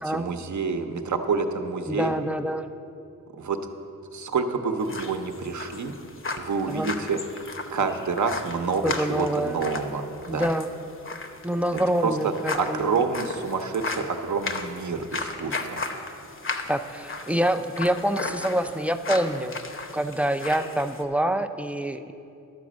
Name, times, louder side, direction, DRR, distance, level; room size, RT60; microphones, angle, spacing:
voice 1, 0.0-2.1 3.3-3.6 4.1-5.9 6.4-7.2 7.7-10.5 12.0-15.8, right 4 dB, 65° right, 6 dB, 0.8 m, -28 dB
voice 2, 1.9-2.7 6.7-6.9 8.8-9.6 10.3-10.7 11.4-12.9 16.7-19.6 19.9-22.1, right 1 dB, 5° right, 8 dB, 0.3 m, -26 dB
sound 1, 4.8-21.0, left 3 dB, 40° left, 0.7 m, -36 dB
11.5 x 5.0 x 7.3 m, 2.7 s
wide cardioid pair, 120°, 32 cm